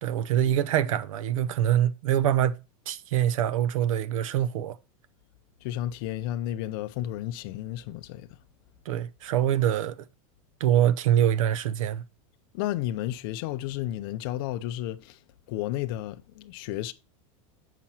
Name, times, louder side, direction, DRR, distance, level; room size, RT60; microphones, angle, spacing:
voice 1, 0.0-2.6 2.9-4.8 8.9-9.9 10.6-12.0, right 10 dB, 65° right, 0.7 m, -24 dB
voice 2, 5.6-8.3 12.5-15.2 15.5-16.9, left 13 dB, 40° left, 0.6 m, -32 dB
7.2 x 5.9 x 4.3 m
supercardioid pair, 175°, 18 cm